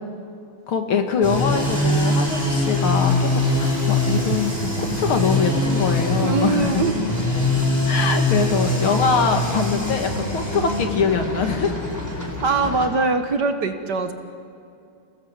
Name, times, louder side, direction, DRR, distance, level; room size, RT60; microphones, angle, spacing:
voice 1, 0.7-6.8 7.8-11.7, left 5 dB, 70° left, 5 dB, 2.6 m, -23 dB
concrete saw and gennie ashford, 1.2-12.9, left 1 dB, 5° left, 4.0 m, -23 dB
voice 2, 6.2-7.0 12.4-14.1, right 4 dB, 55° right, 8 dB, 1.6 m, -22 dB
29.0 x 18.5 x 8.1 m, 2.6 s
omnidirectional pair, 2.4 m